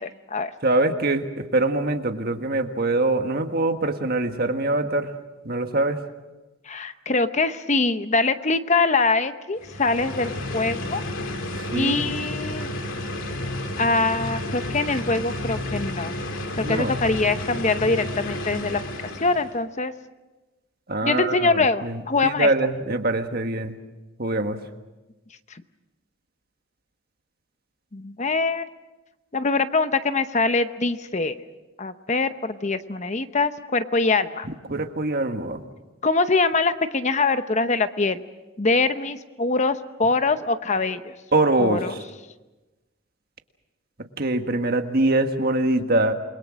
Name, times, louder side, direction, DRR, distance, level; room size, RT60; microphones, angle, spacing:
voice 1, 0.0-0.5 6.7-11.0 11.7-12.7 13.8-16.1 16.5-18.8 19.1-19.9 21.0-22.5 25.5-25.6 27.9-28.6 29.3-31.4 31.8-34.5 36.0-38.2 38.6-41.1 41.6-41.9, left 3 dB, 35° left, 10 dB, 0.8 m, -23 dB
voice 2, 0.6-5.1 5.4-6.0 11.7-12.1 16.6-17.0 20.9-21.5 21.8-23.7 24.2-24.6 34.7-35.6 41.3-41.8 44.2-46.1, right 2 dB, 50° right, 6 dB, 1.6 m, -23 dB
sound 1, 9.6-19.6, left 1 dB, 70° left, 2.3 m, -31 dB
28.5 x 22.0 x 6.3 m, 1.1 s
head